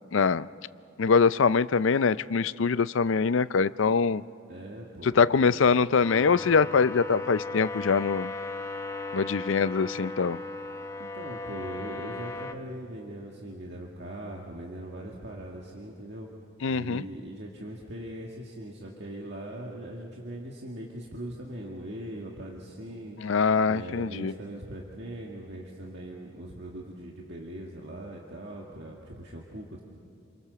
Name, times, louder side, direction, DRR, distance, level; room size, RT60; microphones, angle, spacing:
voice 1, 0.1-0.5 1.0-4.2 5.0-8.3 9.1-10.4 16.6-17.0 23.2-24.3, left 5 dB, 70° left, 17 dB, 0.5 m, -23 dB
voice 2, 4.5-5.6 11.0-16.3 16.7-23.3 23.7-29.8, right 1 dB, 55° right, -2 dB, 2.1 m, -40 dB
sound 1, 6.0-12.5, left 2 dB, 15° left, 0.9 m, -36 dB
28.5 x 23.0 x 6.9 m, 2.5 s
head